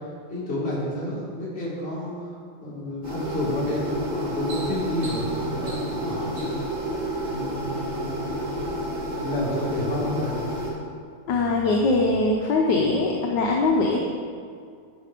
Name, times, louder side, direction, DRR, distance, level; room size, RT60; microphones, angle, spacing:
voice 1, 0.3-2.3 2.6-6.7 7.3-8.4 9.1-10.4, left 1 dB, 30° left, -7 dB, 2.7 m, -30 dB
sound 1, 3.0-10.7, equal, 50° right, 3.2 m, -30 dB
sound 2, 4.5-6.8 7.6-8.1 8.5-8.7, right 2 dB, 80° right, 2.9 m, -42 dB
voice 2, 11.3-14.0, left 3 dB, 65° left, 0 dB, 1.3 m, -21 dB
11.0 x 5.1 x 5.0 m, 2.2 s
omnidirectional pair, 2.3 m